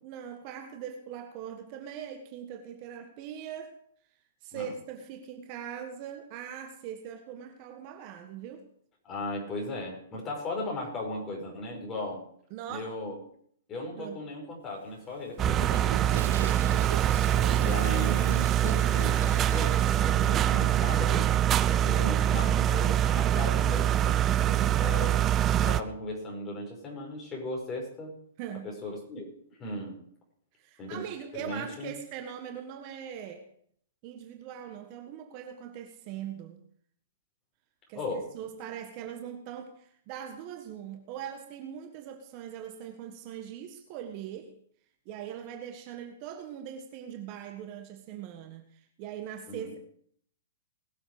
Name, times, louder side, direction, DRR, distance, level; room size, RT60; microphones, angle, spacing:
voice 1, 0.0-3.8 4.4-8.6 12.5-12.9 13.9-14.2 16.1-16.6 20.1-20.5 24.4-24.8 28.4-28.7 30.6-33.4 34.0-36.6 37.9-38.1 38.3-44.5 45.0-49.8, right 9 dB, 40° right, 6 dB, 1.5 m, -41 dB
voice 2, 9.0-12.2 12.7-13.1 13.7-16.8 17.6-21.3 21.8-24.2 24.8-25.2 25.5-28.1 28.6-29.3 29.6-30.0 30.8-31.0 31.3-31.9 37.9-38.3 49.5-49.7, left 1 dB, 20° left, -1 dB, 5.5 m, -37 dB
Toilet flush, 14.7-20.0, right 9 dB, 70° right, 1.3 m, -40 dB
sound 1, 15.4-25.8, right 11 dB, 25° right, 0.6 m, -24 dB
20.5 x 7.7 x 5.0 m, 0.64 s
hypercardioid pair, 140°, 0 cm